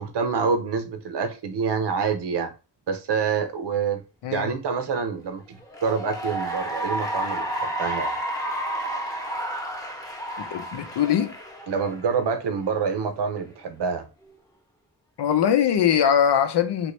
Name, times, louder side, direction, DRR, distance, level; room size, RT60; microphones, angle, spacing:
voice 1, 0.0-2.5 2.9-4.0 4.3-5.4 5.8-8.1 11.7-14.1, right 5 dB, 80° right, 0.7 m, -26 dB
Cheering / Applause, 5.6-12.3, right 1 dB, 10° left, 0.8 m, -31 dB
voice 2, 10.5-11.3 15.2-16.9, left 9 dB, 85° left, 0.6 m, -21 dB
3.0 x 2.5 x 3.1 m
wide cardioid pair, 80°, 40 cm